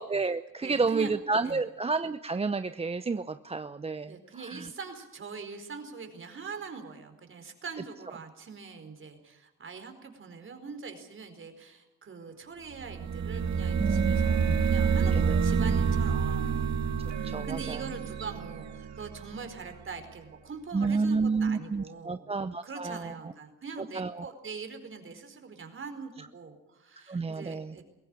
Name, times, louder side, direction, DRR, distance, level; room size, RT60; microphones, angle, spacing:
voice 1, 0.0-4.1 4.4-4.7 13.8-14.6 15.1-15.4 17.2-17.8 20.7-23.1 23.9-24.3 27.1-27.7, right 4 dB, 20° right, 12 dB, 0.7 m, -30 dB
voice 2, 0.6-1.1 1.4-1.6 4.1-16.6 17.1-22.3 22.6-27.8, right 5 dB, 40° right, 7 dB, 4.7 m, -42 dB
sound 1, 12.8-19.5, right 6 dB, 60° right, 2.1 m, -28 dB
21.5 x 17.0 x 8.9 m, 0.93 s
cardioid pair, 90°, 30 cm